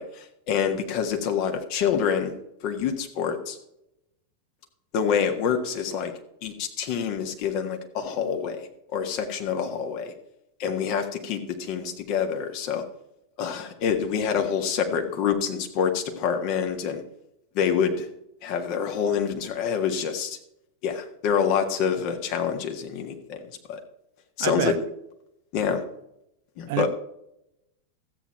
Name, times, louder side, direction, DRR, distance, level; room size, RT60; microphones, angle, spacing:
voice 1, 0.0-2.3 2.6-3.6 4.9-6.1 6.4-10.1 10.6-12.8 13.4-17.0 17.5-18.1 18.4-20.4 20.8-23.8 24.4-24.7 25.5-25.8 26.6-26.9, left 7 dB, 45° left, 1.6 m, -26 dB
voice 2, 24.4-24.8 26.7-26.9, right 15 dB, 50° right, 0.4 m, -27 dB
13.0 x 8.5 x 4.4 m
figure-of-eight pair, 90°, 0 cm